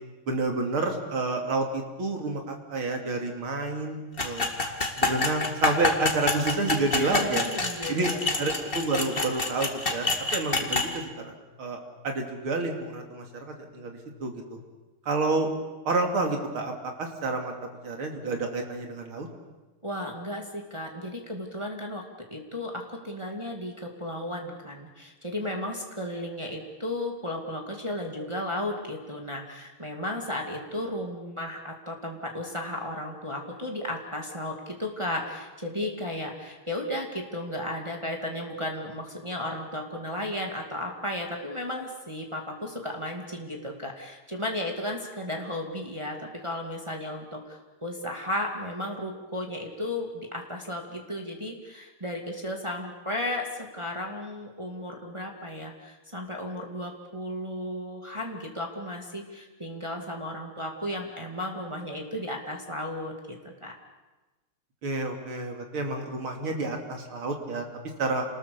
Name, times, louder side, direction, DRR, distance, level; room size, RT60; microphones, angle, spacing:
voice 1, 0.3-4.5 5.0-7.4 7.9-8.1 8.4-11.8 12.0-14.6 15.1-15.5 15.9-17.5 17.8-19.3 64.8-67.6 68.0-68.3, right 3 dB, 75° right, 2 dB, 3.7 m, -29 dB
sound 1, 4.2-10.9, left 3 dB, 25° left, 2.2 m, -27 dB
voice 2, 7.0-8.2 19.8-22.0 22.3-46.2 46.4-53.5 53.7-63.7, left 1 dB, 15° right, 0 dB, 2.4 m, -34 dB
28.5 x 20.0 x 7.0 m, 1.2 s
omnidirectional pair, 2.3 m